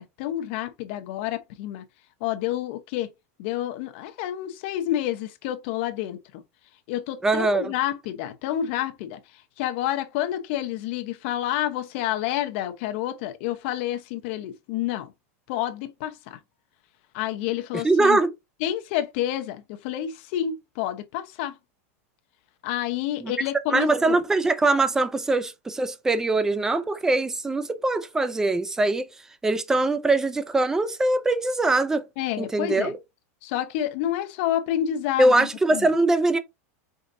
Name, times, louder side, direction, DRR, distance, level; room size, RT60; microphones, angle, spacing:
voice 1, 0.0-1.8 2.2-3.1 3.4-6.4 6.9-9.2 9.6-15.1 15.5-16.4 17.1-18.2 18.6-21.5 22.6-24.2 32.2-32.9 33.4-35.9, left 12 dB, 50° left, 0.9 m, -29 dB
voice 2, 7.2-7.7 17.7-18.3 23.2-23.3 23.7-29.1 29.4-32.1 32.4-32.9 35.2-36.4, right 2 dB, 5° right, 0.5 m, -22 dB
5.1 x 3.9 x 2.6 m
supercardioid pair, 160°, 8 cm